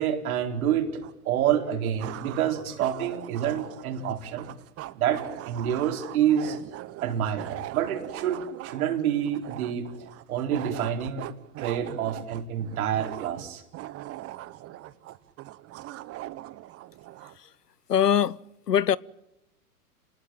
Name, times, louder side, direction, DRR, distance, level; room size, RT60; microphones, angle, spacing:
voice 1, 0.0-4.5 5.0-6.6 7.0-9.9 10.3-11.3 11.6-13.6, right 9 dB, 65° right, 4.4 m, -28 dB
sound 1, 1.0-1.1 2.0-17.4, right 15 dB, 30° right, 1.1 m, -41 dB
voice 2, 17.9-18.4 18.7-19.0, left 9 dB, 90° left, 0.9 m, -22 dB
28.5 x 19.5 x 9.0 m
hypercardioid pair, 105°, 46 cm